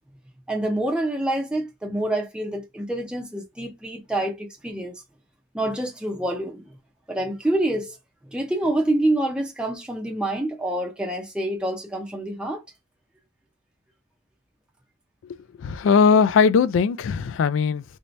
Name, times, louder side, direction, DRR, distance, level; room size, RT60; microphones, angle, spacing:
voice 1, 0.5-4.9 5.5-6.7 7.1-8.0 8.3-12.6, right 1 dB, 5° right, 0.5 m, -26 dB
voice 2, 15.2-17.8, left 5 dB, 75° left, 0.3 m, -20 dB
3.3 x 2.7 x 3.1 m
head